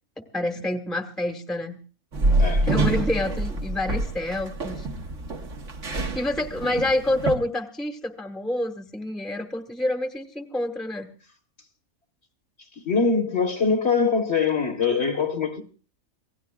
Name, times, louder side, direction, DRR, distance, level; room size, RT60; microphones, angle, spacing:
voice 1, 0.3-1.8 2.6-4.9 6.1-11.1, left 1 dB, ahead, 1.2 m, -28 dB
sound 1, 2.1-7.4, right 2 dB, 60° right, 1.8 m, -26 dB
voice 2, 2.4-2.7 12.8-15.6, left 5 dB, 50° left, 1.7 m, -23 dB
27.0 x 17.5 x 2.4 m
omnidirectional pair, 1.5 m